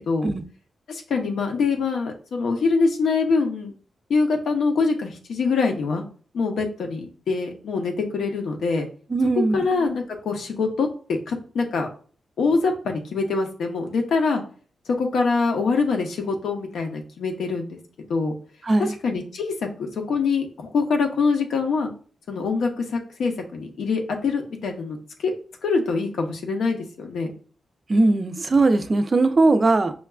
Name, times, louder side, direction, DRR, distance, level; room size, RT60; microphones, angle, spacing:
voice 1, 0.9-3.7 4.1-6.0 6.3-8.9 9.5-11.9 12.4-14.4 15.0-18.3 19.0-21.9 22.3-25.3 25.6-27.3, left 4 dB, 85° left, 0.7 m, -24 dB
voice 2, 9.1-9.6 18.6-18.9 27.9-29.9, right 2 dB, 35° right, 0.3 m, -19 dB
5.5 x 2.3 x 2.3 m
wide cardioid pair, 110°, 0 cm